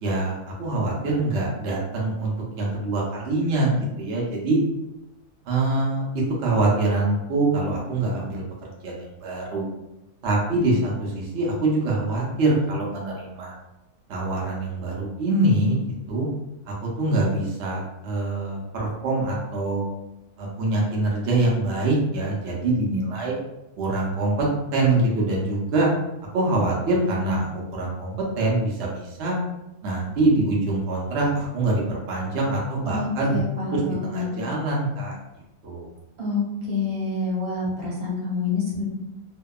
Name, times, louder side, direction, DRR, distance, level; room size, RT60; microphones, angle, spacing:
voice 1, 0.0-2.3 2.6-4.6 5.4-8.4 8.8-8.9 9.2-9.7 10.2-13.5 14.1-15.8 16.1-16.3 16.7-19.9 20.4-23.4 23.8-24.5 24.7-25.9 26.3-29.4 29.8-33.3 33.7-35.2 35.6-35.9, right 2 dB, 60° right, -3 dB, 0.8 m, -24 dB
voice 2, 32.9-34.3 36.2-38.8, left 4 dB, 80° right, -5 dB, 1.4 m, -27 dB
2.7 x 2.2 x 2.2 m, 0.95 s
omnidirectional pair, 1.5 m